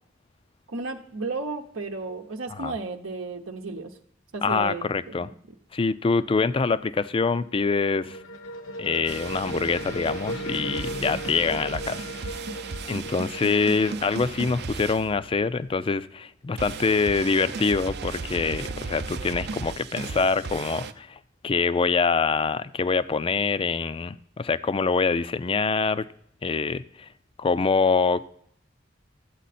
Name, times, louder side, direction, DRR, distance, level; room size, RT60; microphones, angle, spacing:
voice 1, 0.7-3.9 4.3-5.3, right 3 dB, 85° right, 3 dB, 0.9 m, -33 dB
voice 2, 4.4-5.3 5.7-8.2 8.8-12.0 12.9-21.2 21.4-26.1 26.4-27.1 27.4-28.2, left 4 dB, 25° left, 15 dB, 0.4 m, -25 dB
sound 1, 6.9-14.7, equal, 80° left, 1.0 m, -36 dB
sound 2, 9.1-15.8 16.6-20.9, right 4 dB, 55° right, 0.6 m, -36 dB
13.0 x 8.3 x 4.2 m, 0.71 s
head